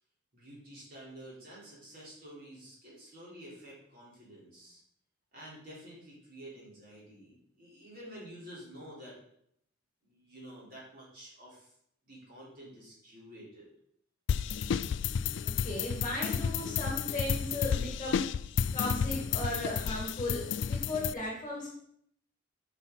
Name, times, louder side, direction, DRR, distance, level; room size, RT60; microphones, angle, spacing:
voice 1, 0.3-4.8 5.3-9.2 10.0-11.7 12.0-13.7, right 1 dB, 45° right, -6 dB, 4.1 m, -50 dB
sound 1, 14.3-21.1, left 7 dB, 60° left, 0.3 m, -32 dB
voice 2, 15.4-18.3 18.7-21.7, left 1 dB, 20° left, -2 dB, 2.0 m, -36 dB
9.6 x 6.1 x 4.1 m, 0.70 s
head